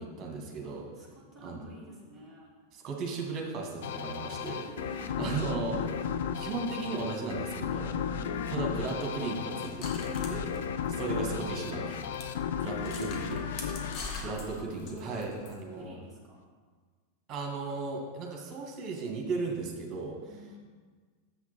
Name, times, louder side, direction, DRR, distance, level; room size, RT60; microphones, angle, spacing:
voice 1, 0.0-0.9 1.4-1.6 2.7-4.6 5.2-5.8 6.4-7.9 8.5-10.4 10.9-12.0 12.6-13.4 14.2-16.0 17.3-20.2, right 4 dB, 30° right, 1 dB, 1.9 m, -36 dB
voice 2, 0.6-2.5 4.4-5.2 5.6-5.8 14.2-15.4 15.8-16.4 20.3-20.6, left 1 dB, ahead, -7 dB, 2.8 m, -50 dB
sound 1, 3.8-15.0, left 7 dB, 55° left, 0.5 m, -34 dB
sound 2, 9.6-11.4 11.7-11.8 12.1-12.3 12.8-15.6, left 3 dB, 35° left, 1.4 m, -42 dB
7.2 x 6.0 x 5.8 m, 1.5 s
figure-of-eight pair, 90°, 0 cm